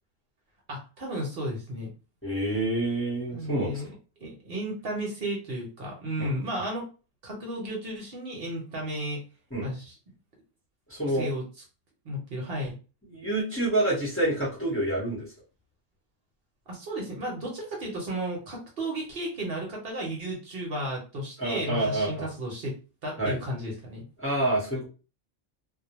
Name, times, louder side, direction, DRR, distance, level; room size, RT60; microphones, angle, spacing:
voice 1, 0.7-1.9 3.3-3.9 4.2-6.8 7.2-9.2 9.6-9.9 11.1-11.4 12.0-12.7 16.7-22.7 23.0-24.0, right 1 dB, 60° right, -1 dB, 0.9 m, -33 dB
voice 2, 2.2-3.8 6.2-6.3 9.5-9.7 10.9-11.3 13.1-15.3 21.4-22.3 23.2-23.4 24.2-24.8, right 1 dB, 15° left, -6 dB, 0.8 m, -28 dB
2.2 x 2.1 x 2.9 m, 0.33 s
omnidirectional pair, 1.2 m